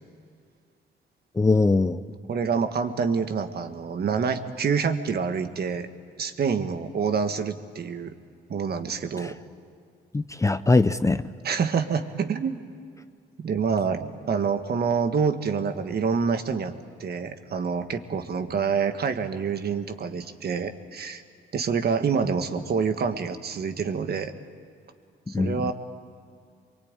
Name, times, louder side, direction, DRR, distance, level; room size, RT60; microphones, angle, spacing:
voice 1, 1.4-2.0 9.2-9.3 10.1-11.2 25.3-25.7, left 3 dB, 15° left, 12 dB, 0.6 m, -21 dB
voice 2, 2.3-5.9 6.2-8.1 8.5-9.3 11.4-12.6 13.4-16.7 17.0-21.2 21.5-24.4 25.3-25.7, right 6 dB, 55° right, 8 dB, 1.6 m, -27 dB
24.0 x 23.0 x 9.0 m, 2.3 s
cardioid pair, 90°, 20 cm